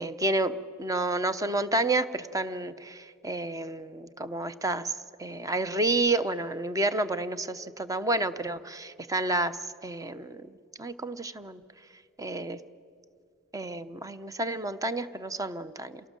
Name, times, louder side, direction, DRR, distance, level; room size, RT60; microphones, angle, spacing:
voice 1, 0.0-4.9 5.2-9.6 9.8-10.5 10.8-11.6 12.2-12.6 13.5-16.0, right 2 dB, 15° right, 11 dB, 0.7 m, -30 dB
27.5 x 18.0 x 7.5 m, 2.3 s
head